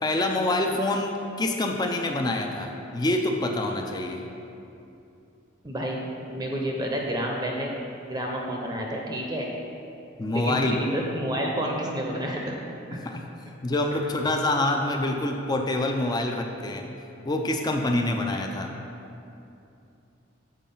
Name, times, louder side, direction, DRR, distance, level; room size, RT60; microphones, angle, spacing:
voice 1, 0.0-4.2 10.2-10.8 13.0-13.2 13.5-16.9 17.3-18.7, left 2 dB, 20° left, 2 dB, 0.4 m, -26 dB
voice 2, 5.6-6.0 6.3-7.7 8.1-9.5 10.3-12.6 12.9-13.0, equal, 20° right, -1 dB, 0.7 m, -29 dB
7.3 x 4.6 x 5.4 m, 2.7 s
head